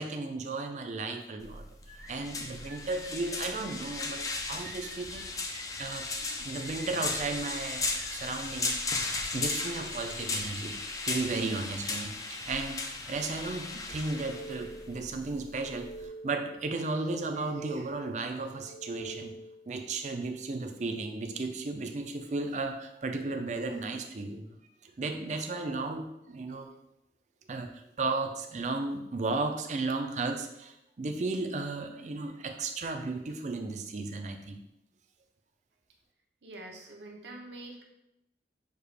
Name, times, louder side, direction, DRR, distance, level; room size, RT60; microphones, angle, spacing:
voice 1, 0.0-1.6 2.1-5.3 5.8-8.8 9.3-10.8 11.0-19.3 19.7-24.6 24.8-26.7 27.5-34.6, right 3 dB, 40° right, 5 dB, 0.5 m, -34 dB
sound 1, 1.4-16.1, left 3 dB, 20° left, 0.4 m, -36 dB
sound 2, 1.8-9.2, left 1 dB, 60° left, 1.3 m, -52 dB
sound 3, 13.9-15.1 15.4-16.6 16.9-18.1 18.5-19.6, right 2 dB, 85° left, 1.0 m, -46 dB
voice 2, 36.4-37.8, right 2 dB, 80° right, 1 dB, 0.9 m, -45 dB
6.5 x 2.4 x 3.3 m, 0.86 s
head